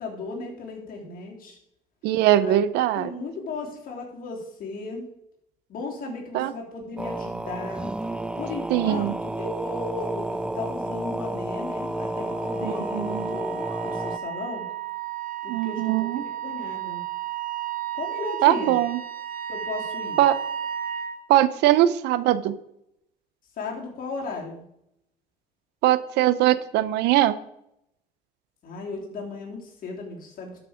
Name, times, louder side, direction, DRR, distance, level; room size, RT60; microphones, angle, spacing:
voice 1, 0.0-1.6 2.4-2.6 2.9-5.1 5.7-7.9 8.4-14.6 15.4-17.0 17.9-18.8 19.5-20.2 23.6-24.6 28.6-30.6, left 3 dB, 55° left, -1 dB, 3.3 m, -36 dB
voice 2, 2.0-3.1 6.3-6.5 8.7-9.1 12.9-13.3 15.5-16.2 18.4-19.0 20.2-20.4 21.3-22.6 25.8-27.3, right 13 dB, 90° right, 15 dB, 0.7 m, -21 dB
sound 1, 7.0-14.2, right 1 dB, 5° right, 0.4 m, -31 dB
Wind instrument woodwind instrument, 11.7-21.2, right 10 dB, 55° right, 1.7 m, -34 dB
12.0 x 6.0 x 5.1 m, 0.78 s
cardioid pair, 110°, 17 cm